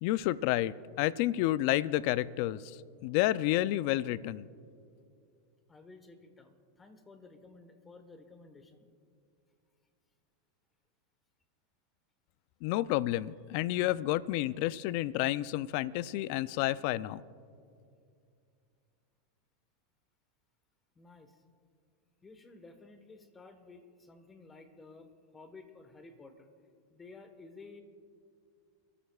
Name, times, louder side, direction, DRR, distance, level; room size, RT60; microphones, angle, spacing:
voice 1, 0.0-4.5 12.6-17.2, left 15 dB, 60° left, 18 dB, 0.4 m, -30 dB
voice 2, 5.7-8.9 20.9-21.4 22.2-26.5 26.9-27.8, left 3 dB, 15° left, 8 dB, 1.3 m, -53 dB
27.5 x 14.0 x 2.4 m, 2.4 s
supercardioid pair, 130°, 0 cm